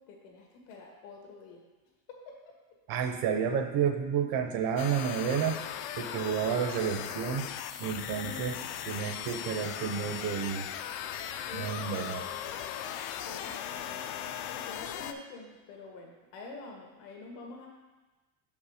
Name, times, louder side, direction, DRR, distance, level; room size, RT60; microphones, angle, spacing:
voice 1, 0.0-1.6 2.1-2.2 8.1-8.6 11.5-13.0 13.2-17.7, left 3 dB, 90° left, 0 dB, 1.7 m, -47 dB
voice 2, 2.9-5.6 6.0-7.5 7.8-8.5 8.9-10.7 11.5-12.2, right 7 dB, 50° right, 6 dB, 0.8 m, -30 dB
sound 1, 4.8-15.1, left 10 dB, 70° left, 0.6 m, -38 dB
6.4 x 5.3 x 5.0 m, 1.2 s
cardioid pair, 155°, 43 cm